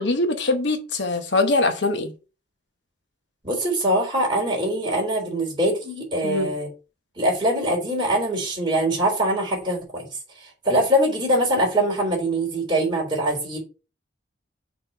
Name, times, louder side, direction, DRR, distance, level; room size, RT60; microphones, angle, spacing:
voice 1, 0.0-2.1 6.2-6.5, left 2 dB, 60° left, 1.0 m, -22 dB
voice 2, 3.4-6.7 7.2-10.1 10.6-13.6, right 1 dB, 25° right, 3.6 m, -23 dB
5.8 x 4.4 x 5.5 m
head